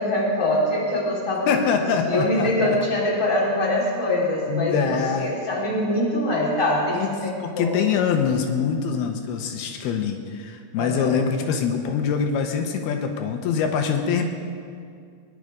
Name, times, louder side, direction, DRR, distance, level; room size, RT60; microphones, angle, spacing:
voice 1, 0.0-1.6 2.1-7.8 10.8-11.2, left 1 dB, 10° left, -6 dB, 3.0 m, -24 dB
voice 2, 1.5-2.8 4.5-5.4 6.9-14.3, left 6 dB, 85° left, 5 dB, 2.8 m, -24 dB
21.0 x 10.5 x 5.0 m, 2.3 s
omnidirectional pair, 4.6 m